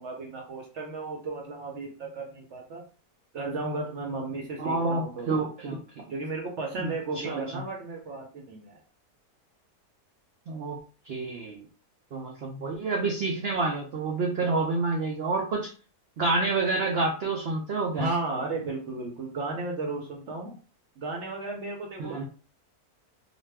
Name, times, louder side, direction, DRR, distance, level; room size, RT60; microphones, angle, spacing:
voice 1, 0.0-2.8 3.3-5.4 6.1-8.8 17.9-20.5 21.0-22.2, right 3 dB, 60° right, 0 dB, 0.8 m, -34 dB
voice 2, 4.6-6.0 6.8-7.6 10.5-10.8 11.0-11.7 12.1-15.7 16.2-18.1 22.0-22.2, right 3 dB, 80° right, 1 dB, 0.5 m, -28 dB
2.5 x 2.3 x 3.3 m, 0.37 s
omnidirectional pair, 1.6 m